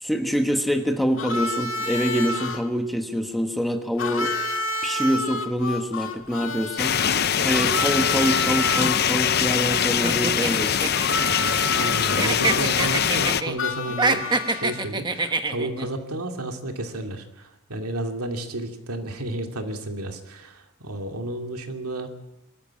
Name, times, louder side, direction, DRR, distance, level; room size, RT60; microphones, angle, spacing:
voice 1, 0.0-4.4 4.8-7.0 7.4-10.9, equal, ahead, 5 dB, 1.3 m, -25 dB
Harmonica, 1.2-2.6 4.0-9.0 10.9-14.9, left 2 dB, 60° left, 2.1 m, -29 dB
sound 1, 6.8-13.4, left 8 dB, 45° left, 0.6 m, -23 dB
sound 2, 10.0-11.9 12.2-13.6 13.9-15.9, right 3 dB, 20° right, 1.1 m, -25 dB
voice 2, 11.2-22.1, right 1 dB, 90° right, 4 dB, 2.5 m, -32 dB
23.5 x 13.0 x 8.6 m, 0.93 s
head